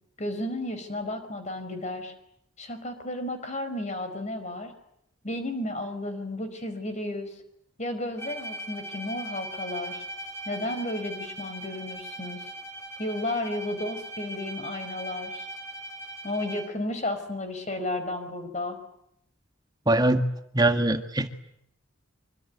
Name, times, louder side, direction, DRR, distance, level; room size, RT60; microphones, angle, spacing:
voice 1, 0.2-2.1 2.6-4.7 5.2-7.4 7.8-10.0 10.4-12.4 13.0-15.5 16.2-18.8, left 1 dB, 35° left, 8 dB, 5.0 m, -33 dB
Bowed string instrument, 8.2-16.9, right 1 dB, 10° left, 5.0 m, -40 dB
voice 2, 19.9-20.2 20.5-21.3, right 1 dB, 20° right, 7 dB, 1.7 m, -22 dB
25.0 x 25.0 x 9.5 m, 0.75 s
head